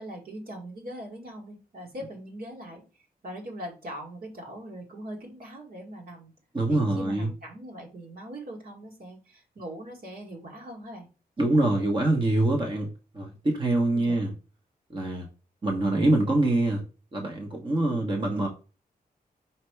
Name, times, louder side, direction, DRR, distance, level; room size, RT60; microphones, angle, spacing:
voice 1, 0.0-6.3 6.7-11.1 14.0-14.2, right 1 dB, 65° right, 0 dB, 2.4 m, -41 dB
voice 2, 6.5-7.3 11.4-14.3 14.9-15.3 15.6-16.8 17.1-18.5, right 2 dB, 30° right, 1 dB, 1.2 m, -25 dB
5.8 x 5.1 x 3.3 m, 0.33 s
wide cardioid pair, 165°, 16 cm